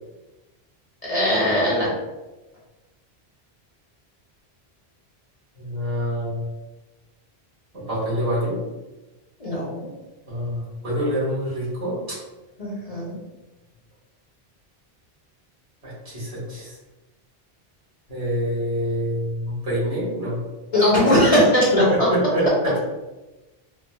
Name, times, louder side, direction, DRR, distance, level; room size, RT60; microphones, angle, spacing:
voice 1, 1.1-1.9 9.4-9.9 12.6-13.2 20.7-22.1, equal, 40° left, -6 dB, 0.8 m, -19 dB
voice 2, 5.6-6.4 7.9-8.6 10.3-12.2 15.8-16.7 18.1-20.4 21.9-22.8, equal, 65° right, -9 dB, 1.9 m, -26 dB
4.3 x 2.2 x 2.2 m, 1.1 s
omnidirectional pair, 1.1 m